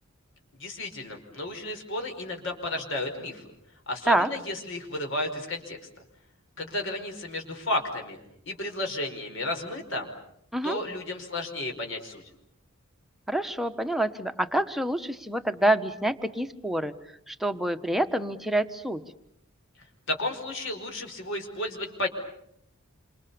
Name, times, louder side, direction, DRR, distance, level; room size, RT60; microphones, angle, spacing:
voice 1, 0.6-3.4 3.9-5.8 6.6-8.2 8.5-10.1 10.6-12.2 20.1-22.1, left 1 dB, 60° left, 4 dB, 5.1 m, -32 dB
voice 2, 13.3-16.9 17.3-19.0, right 1 dB, ahead, 6 dB, 1.2 m, -27 dB
28.5 x 27.0 x 7.1 m, 0.75 s
head